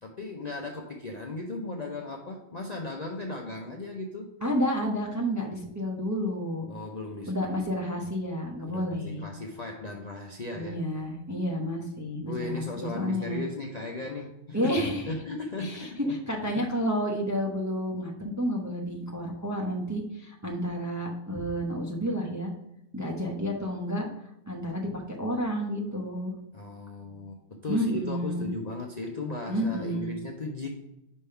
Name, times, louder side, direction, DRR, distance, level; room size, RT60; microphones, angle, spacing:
voice 1, 0.0-4.3 6.7-7.5 8.7-10.8 12.3-14.8 15.1-16.2 16.6-16.7 26.5-30.7, left 2 dB, 45° left, 0 dB, 0.6 m, -36 dB
voice 2, 4.4-6.6 7.3-9.2 10.5-13.4 14.5-15.1 15.6-22.5 22.9-24.1 24.5-26.3 27.7-28.5 29.5-30.2, equal, 20° right, -1 dB, 0.6 m, -30 dB
5.3 x 3.5 x 5.5 m, 0.90 s
omnidirectional pair, 1.4 m